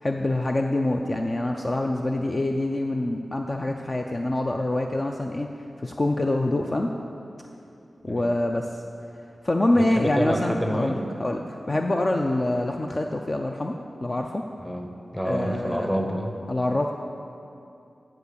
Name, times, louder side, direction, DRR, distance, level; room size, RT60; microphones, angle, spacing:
voice 1, 0.0-5.5 5.8-6.9 8.0-8.8 9.4-14.4 15.2-15.9 16.5-16.9, left 1 dB, 30° left, 3 dB, 0.4 m, -25 dB
voice 2, 9.8-11.1 14.6-16.4, equal, 5° left, 3 dB, 0.9 m, -28 dB
10.5 x 4.9 x 6.8 m, 2.7 s
wide cardioid pair, 100°, 0 cm